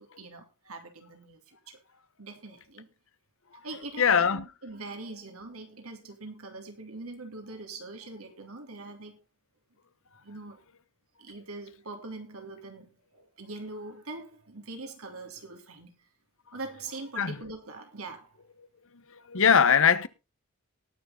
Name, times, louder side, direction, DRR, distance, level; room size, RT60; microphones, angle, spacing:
voice 1, 0.0-1.8 2.2-2.9 3.6-9.2 10.2-10.6 11.2-15.9 16.5-18.4, right 3 dB, 80° right, 3.4 m, -43 dB
voice 2, 4.0-4.5 17.2-17.4 19.1-20.1, left 7 dB, 65° left, 1.1 m, -21 dB
19.5 x 6.9 x 3.9 m
head